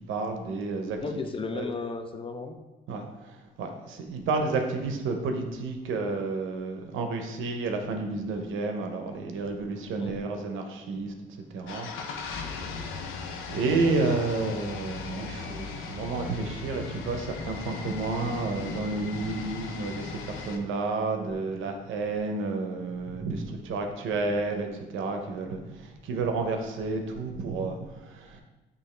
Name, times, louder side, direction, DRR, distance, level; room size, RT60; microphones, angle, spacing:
voice 1, 0.1-1.0 1.5-1.7 2.9-11.1 11.5-13.2 13.5-28.4, right 3 dB, 80° right, 4 dB, 0.6 m, -31 dB
voice 2, 1.0-2.6 4.5-4.8 10.0-10.2, left 4 dB, 25° left, 6 dB, 0.4 m, -35 dB
sound 1, 11.7-20.6, left 5 dB, 90° left, 0.5 m, -38 dB
4.8 x 2.5 x 3.2 m, 1.1 s
cardioid pair, 90°, 20 cm